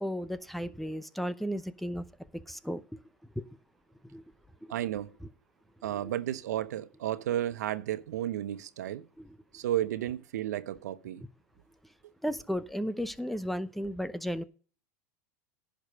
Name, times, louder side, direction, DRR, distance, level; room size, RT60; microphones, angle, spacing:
voice 1, 0.0-2.1 2.3-2.8 3.3-3.4 4.0-4.2 4.6-4.7 6.0-6.1 9.2-9.3 12.2-14.4, equal, ahead, 0.7 m, -34 dB
voice 2, 4.7-5.1 5.8-9.0 9.5-11.2, right 12 dB, 85° right, 0.8 m, -33 dB
10.5 x 5.1 x 6.4 m
supercardioid pair, 115°, 9 cm